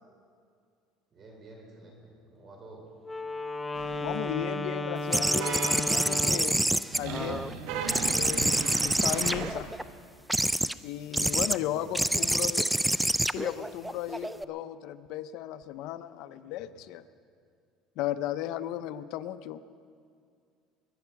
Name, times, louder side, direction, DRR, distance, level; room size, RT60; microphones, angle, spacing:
voice 1, 1.1-2.9 11.5-12.1 16.4-16.5, right 2 dB, 35° right, 1 dB, 3.7 m, -50 dB
Wind instrument woodwind instrument, 3.0-6.6, left 2 dB, 10° left, 0.7 m, -34 dB
sound 1, 3.7-4.4 5.4-6.4 6.9-9.5, right 5 dB, 75° right, 1.7 m, -37 dB
voice 2, 4.0-6.7 6.9-7.5 8.1-9.7 10.8-12.7 13.3-17.1 18.0-19.6, left 12 dB, 65° left, 12 dB, 0.6 m, -35 dB
sound 2, 5.1-7.5 7.9-9.8 10.3-10.7 11.1-11.6 11.9-14.4, right 1 dB, 5° right, 0.3 m, -27 dB
22.0 x 11.0 x 5.9 m, 2.3 s
cardioid pair, 130°, 0 cm